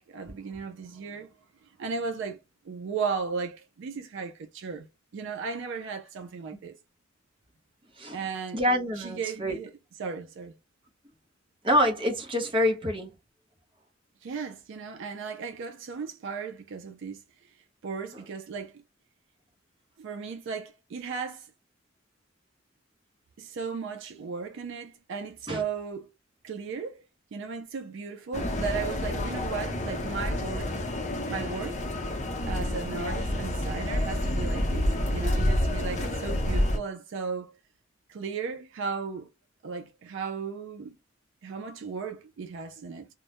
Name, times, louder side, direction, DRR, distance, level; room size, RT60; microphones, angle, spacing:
voice 1, 0.0-1.3 1.8-2.4 2.6-4.9 5.1-6.7 8.1-8.6 9.0-9.7 10.0-10.6 14.2-17.2 17.8-18.8 20.0-21.5 23.4-26.1 26.4-27.0 27.3-30.7 31.3-31.8 32.5-37.5 38.1-39.3 39.6-41.0 41.4-43.1, right 5 dB, 65° right, 0.4 m, -36 dB
voice 2, 8.5-9.6 11.6-13.1 25.5-25.6, equal, 25° right, 0.7 m, -26 dB
sound 1, 28.3-36.8, left 1 dB, 35° left, 0.6 m, -29 dB
2.2 x 2.0 x 2.8 m
head